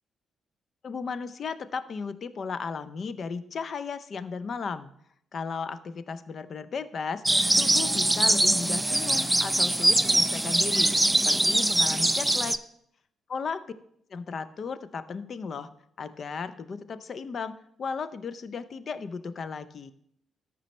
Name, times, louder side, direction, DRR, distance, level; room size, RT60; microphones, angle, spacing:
voice 1, 0.8-4.9 5.3-7.2 7.6-12.6 13.3-13.6 14.1-15.7 16.0-19.9, left 5 dB, 55° left, 13 dB, 0.6 m, -35 dB
sound 1, 7.3-12.6, right 1 dB, 10° right, 0.5 m, -23 dB
13.5 x 5.4 x 3.2 m, 0.70 s
hypercardioid pair, 45°, 0 cm